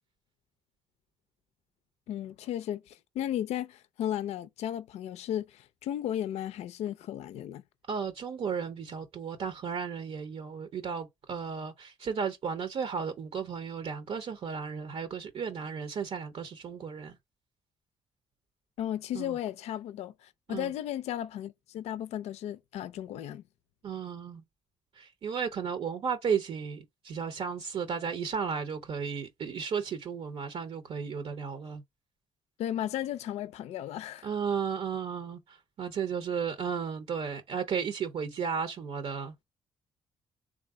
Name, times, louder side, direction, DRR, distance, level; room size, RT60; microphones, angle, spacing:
voice 1, 2.1-7.6 18.8-23.4 32.6-34.3, left 11 dB, 75° left, 0.4 m, -35 dB
voice 2, 7.9-17.2 19.1-19.4 20.5-20.7 23.8-24.4 24.9-31.8 34.2-39.3, right 6 dB, 65° right, 0.7 m, -34 dB
3.3 x 2.6 x 3.6 m
supercardioid pair, 55°, 11 cm